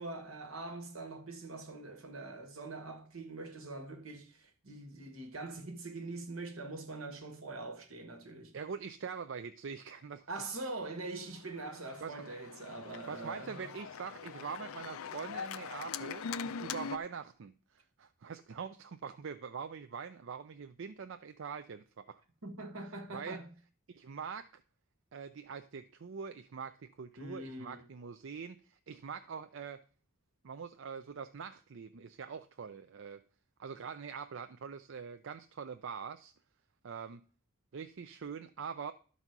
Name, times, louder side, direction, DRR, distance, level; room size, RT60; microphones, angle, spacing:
voice 1, 0.0-8.6 10.3-13.7 22.4-23.5 27.2-27.9, right 2 dB, 80° right, 1.6 m, -43 dB
voice 2, 8.5-10.3 12.0-12.1 13.1-16.3 16.6-22.2 23.1-23.4 23.9-24.6 25.1-29.8 30.4-33.2 33.6-36.3 36.8-37.2 37.7-38.9, right 6 dB, 65° right, 0.5 m, -43 dB
Organ, 11.2-17.0, left 6 dB, 80° left, 0.5 m, -42 dB
12.5 x 4.2 x 5.9 m
head